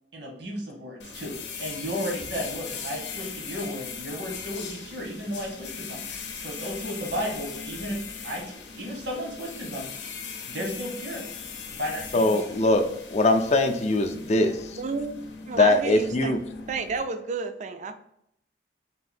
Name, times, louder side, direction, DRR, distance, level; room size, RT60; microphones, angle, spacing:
voice 1, 0.1-6.0 6.3-8.0 8.2-9.9 10.5-11.2 11.7-12.4, equal, 80° right, -1 dB, 1.2 m, -34 dB
sound 1, 1.0-17.0, left 5 dB, 80° left, 0.6 m, -39 dB
voice 2, 12.1-14.8 15.5-16.4, left 2 dB, 40° left, 6 dB, 0.4 m, -22 dB
voice 3, 14.8-16.4 16.7-17.9, right 4 dB, 40° right, 9 dB, 0.4 m, -31 dB
3.7 x 2.6 x 4.2 m, 0.74 s
head